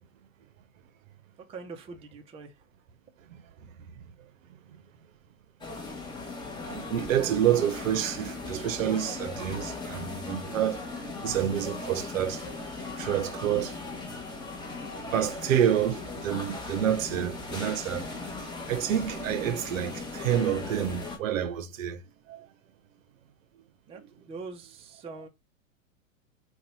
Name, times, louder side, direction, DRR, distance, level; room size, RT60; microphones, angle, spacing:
voice 1, 1.4-2.5 23.9-25.3, right 4 dB, 15° right, 0.5 m, -43 dB
sound 1, 5.6-21.2, left 3 dB, 10° left, 0.8 m, -38 dB
voice 2, 6.7-13.8 15.1-18.0 18.7-22.0 22.3-22.5, right 10 dB, 75° right, 0.7 m, -28 dB
2.7 x 2.3 x 4.1 m
hypercardioid pair, 105°, 40 cm